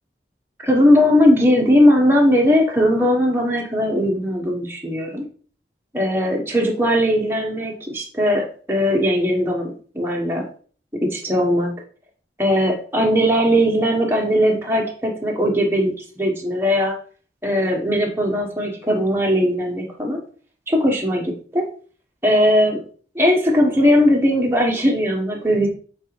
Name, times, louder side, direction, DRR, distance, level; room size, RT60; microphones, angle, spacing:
voice 1, 0.6-5.2 5.9-10.4 11.1-11.7 12.4-17.0 17.4-20.2 20.7-21.6 22.2-22.8 23.1-25.7, equal, 15° right, -1 dB, 1.2 m, -19 dB
7.5 x 4.0 x 3.2 m, 0.42 s
head